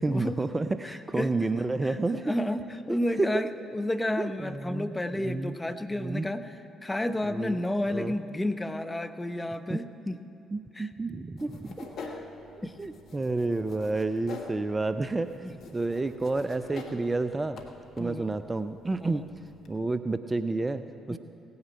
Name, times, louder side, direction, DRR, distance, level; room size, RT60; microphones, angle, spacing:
voice 1, 0.0-2.2 2.9-3.4 4.2-5.0 5.2-5.5 6.0-6.3 7.2-7.6 7.9-8.1 9.7-9.8 10.5-11.9 12.6-15.3 15.7-17.6 18.0-19.2 19.7-21.2, right 3 dB, 25° right, 11 dB, 0.5 m, -30 dB
voice 2, 0.8-1.3 1.8-10.2 10.8-10.9 12.0-12.2 12.6-12.7 15.4-15.5 18.0-18.3 19.0-19.2 21.1-21.2, left 1 dB, 15° left, 8 dB, 0.7 m, -31 dB
sound 1, 11.4-19.8, left 4 dB, 60° left, 1.3 m, -46 dB
17.0 x 9.5 x 5.7 m, 2.8 s
hypercardioid pair, 45°, 0 cm